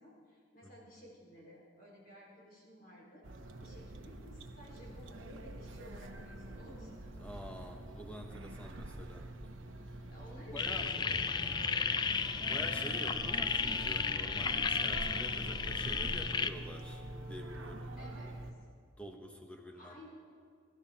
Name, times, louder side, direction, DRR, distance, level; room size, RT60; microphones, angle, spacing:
voice 1, 0.0-3.2 3.6-7.0 10.1-12.1 18.0-18.4 19.8-20.1, equal, 45° left, -4 dB, 4.1 m, -54 dB
sound 1, 3.2-18.5, right 1 dB, 80° right, 1.0 m, -46 dB
voice 2, 7.2-9.3 9.9-10.0 10.5-10.9 12.5-18.3 19.0-20.0, equal, 5° left, 3 dB, 1.2 m, -47 dB
sound 2, 10.6-16.5, left 5 dB, 20° left, 0.3 m, -33 dB
sound 3, 10.7-18.2, right 1 dB, 15° right, 1.4 m, -51 dB
22.5 x 12.5 x 4.3 m, 2.2 s
head